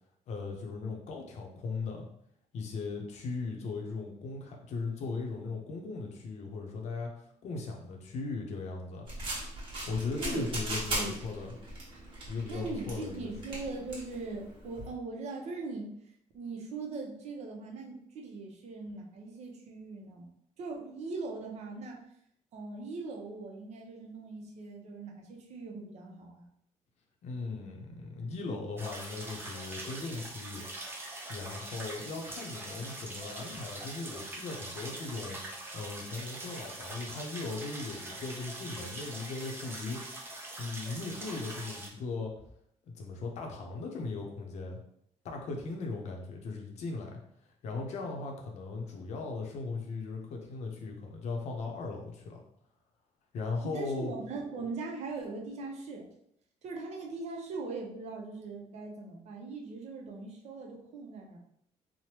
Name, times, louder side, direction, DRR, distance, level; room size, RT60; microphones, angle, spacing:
voice 1, 0.3-2.1 2.5-7.1 7.4-9.1 9.9-11.6 12.3-13.3 27.2-30.7 31.3-40.0 40.6-42.3 43.0-44.8 45.2-47.2 47.6-52.4 53.3-54.1, left 3 dB, 65° left, 1 dB, 0.6 m, -38 dB
sound 1, 9.1-14.9, right 1 dB, 45° right, 1.1 m, -38 dB
voice 2, 10.2-10.5 10.9-11.2 12.5-15.9 16.3-20.3 20.6-22.0 22.5-26.5 53.6-56.1 56.6-61.4, right 3 dB, 60° right, 1 dB, 0.6 m, -40 dB
sound 2, 28.8-41.9, right 2 dB, 20° right, 0.5 m, -43 dB
3.2 x 2.1 x 2.9 m, 0.72 s
cardioid pair, 145°, 13 cm